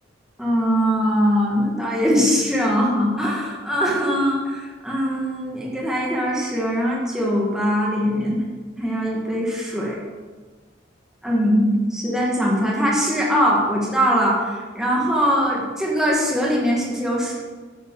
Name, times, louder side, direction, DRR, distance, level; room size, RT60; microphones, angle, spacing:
voice 1, 0.4-8.4 8.8-10.0 11.2-17.3, equal, 5° right, -4 dB, 1.8 m, -21 dB
10.5 x 8.4 x 4.8 m, 1.4 s
head